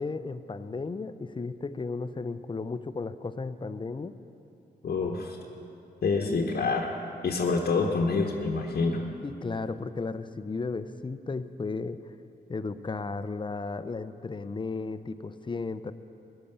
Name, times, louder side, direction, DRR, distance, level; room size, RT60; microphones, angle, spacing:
voice 1, 0.0-4.2 6.2-6.6 9.2-12.1 12.5-15.9, left 4 dB, 25° left, 13 dB, 0.6 m, -34 dB
voice 2, 4.8-5.4 6.0-7.0 7.2-9.0, left 4 dB, 55° left, 0 dB, 1.1 m, -27 dB
13.5 x 10.0 x 6.8 m, 2.8 s
supercardioid pair, 55°, 18 cm